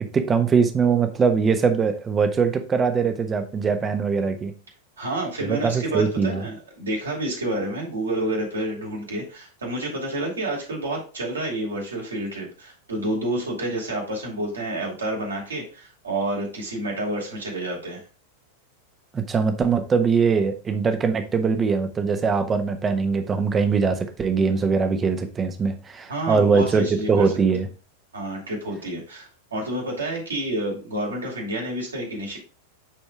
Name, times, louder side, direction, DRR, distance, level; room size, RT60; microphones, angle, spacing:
voice 1, 0.1-4.5 5.4-6.4 19.1-27.7, right 5 dB, 20° right, 7 dB, 1.2 m, -22 dB
voice 2, 5.0-18.0 26.1-27.3 28.1-32.4, right 1 dB, 70° right, -1 dB, 3.2 m, -29 dB
8.8 x 4.4 x 3.6 m, 0.35 s
figure-of-eight pair, 90°, 0 cm